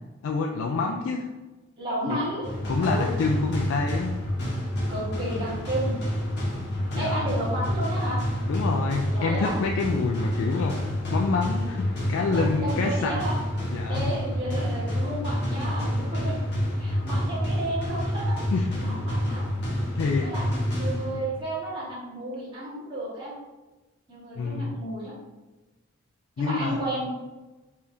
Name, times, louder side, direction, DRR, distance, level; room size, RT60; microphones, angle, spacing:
voice 1, 0.2-1.3 2.1-2.2 2.7-4.1 7.0-7.3 8.5-13.1 13.7-14.1 18.5-18.7 19.9-20.3 24.4-24.7 26.4-26.8, left 4 dB, 85° left, 2 dB, 0.3 m, -27 dB
voice 2, 1.8-2.5 2.8-3.1 4.9-5.9 6.9-8.2 9.1-9.5 12.3-13.4 13.9-16.3 16.8-18.4 18.8-19.4 20.2-23.3 24.1-25.1 26.4-27.0, right 1 dB, 25° right, -10 dB, 1.3 m, -32 dB
sound 1, 2.4-21.4, left 1 dB, 55° left, 1.2 m, -28 dB
3.5 x 3.4 x 2.7 m, 1.1 s
head